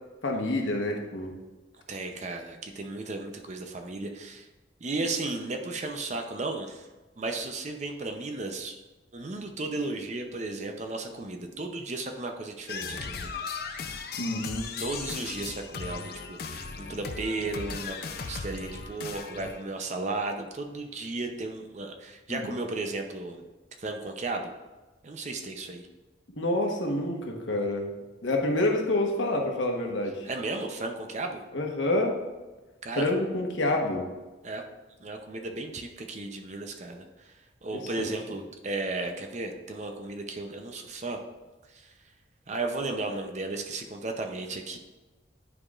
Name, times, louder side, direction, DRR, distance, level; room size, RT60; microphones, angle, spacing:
voice 1, 0.2-1.4 14.2-14.7 22.3-22.4 26.4-27.9 28.2-30.3 31.5-32.2 33.0-34.1 37.7-38.1, left 1 dB, 80° left, 1 dB, 1.1 m, -28 dB
voice 2, 1.9-4.5 4.8-6.9 7.2-8.8 9.1-13.6 14.8-23.4 23.8-24.5 25.0-25.9 30.2-31.4 32.8-33.3 34.4-34.6 35.0-37.3 37.6-41.2 41.7-41.9 42.5-44.8, right 2 dB, 40° right, 4 dB, 0.6 m, -34 dB
sound 1, 12.7-19.6, left 5 dB, 55° left, 0.5 m, -37 dB
9.8 x 4.9 x 2.4 m, 1.2 s
head